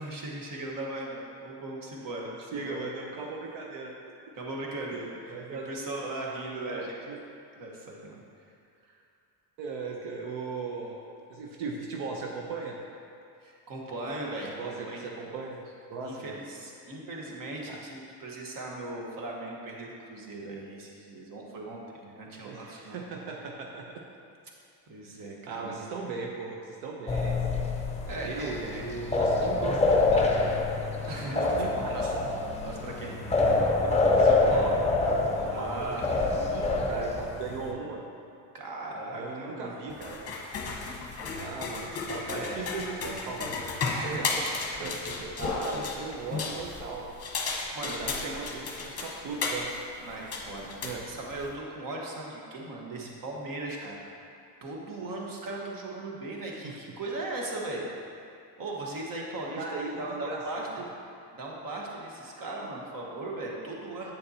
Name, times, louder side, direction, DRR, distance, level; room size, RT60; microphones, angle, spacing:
voice 1, 0.0-2.8 4.4-5.4 5.6-7.1 7.6-8.2 13.4-15.0 16.0-23.0 24.9-25.9 28.0-28.9 31.1-31.4 31.9-32.1 32.6-33.2 35.4-36.1 38.5-39.7 42.2-42.6 43.9-44.4 44.8-45.0 47.5-48.3 50.0-54.0 54.6-57.9 58.6-60.7 61.3-64.1, right 2 dB, 45° right, -2 dB, 1.4 m, -38 dB
voice 2, 2.5-3.9 5.3-5.7 6.7-7.2 9.6-11.0 11.3-12.8 14.6-16.4 17.7-17.8 22.4-24.0 25.5-27.4 28.2-30.6 31.0-32.1 33.5-36.2 36.5-38.0 39.1-40.4 41.3-47.1 47.8-49.7 50.8-51.0 52.9-53.1 56.6-56.8 59.6-60.9, right 4 dB, 85° right, 0 dB, 0.8 m, -38 dB
sound 1, 27.1-37.7, left 3 dB, 15° left, 0.6 m, -26 dB
sound 2, 39.9-51.5, left 4 dB, 35° left, 0.9 m, -34 dB
8.5 x 6.6 x 2.8 m, 2.5 s
cardioid pair, 115°, 44 cm